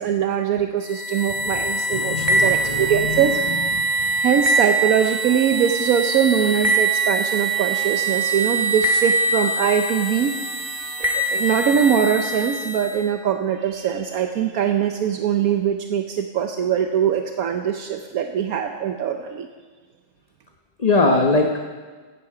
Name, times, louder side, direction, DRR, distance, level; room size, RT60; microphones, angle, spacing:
voice 1, 0.0-3.4 4.2-10.3 11.0-19.5, right 8 dB, 75° right, 5 dB, 1.2 m, -22 dB
sound 1, 0.9-13.0, right 2 dB, 15° right, 2.1 m, -23 dB
voice 2, 1.9-3.0 4.0-4.1 20.8-21.6, left 3 dB, 30° left, 2 dB, 1.0 m, -21 dB
16.5 x 12.5 x 4.9 m, 1.4 s
omnidirectional pair, 1.5 m